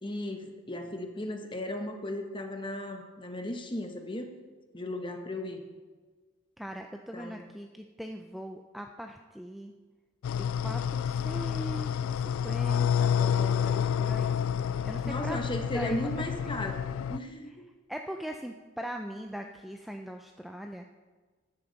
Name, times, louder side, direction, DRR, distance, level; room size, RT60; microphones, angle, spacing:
voice 1, 0.0-4.3 4.7-5.6 7.1-7.4 15.0-16.8 17.1-17.6, left 1 dB, 25° left, 5 dB, 1.0 m, -36 dB
voice 2, 6.6-9.7 10.3-16.7 17.9-20.8, equal, ahead, 4 dB, 0.4 m, -41 dB
sound 1, 10.2-17.2, left 8 dB, 80° left, 0.3 m, -29 dB
13.5 x 9.8 x 4.0 m, 1.4 s
head